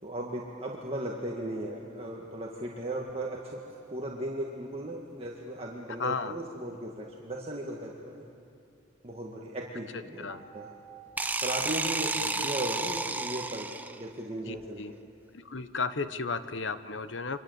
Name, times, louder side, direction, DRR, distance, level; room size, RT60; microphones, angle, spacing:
voice 1, 0.0-3.6 3.9-8.1 9.0-10.7 11.4-13.7 14.0-15.0, right 1 dB, 30° right, -2 dB, 1.9 m, -36 dB
sound 1, 3.1-4.6 10.3-13.6, right 7 dB, 45° right, 5.5 m, -55 dB
voice 2, 6.0-6.4 9.9-10.4 12.1-12.5 14.5-14.9 15.3-17.4, left 4 dB, 70° left, 12 dB, 1.0 m, -34 dB
sound 2, 11.2-14.1, right 3 dB, 10° right, 0.8 m, -31 dB
29.5 x 24.0 x 8.1 m, 2.6 s
head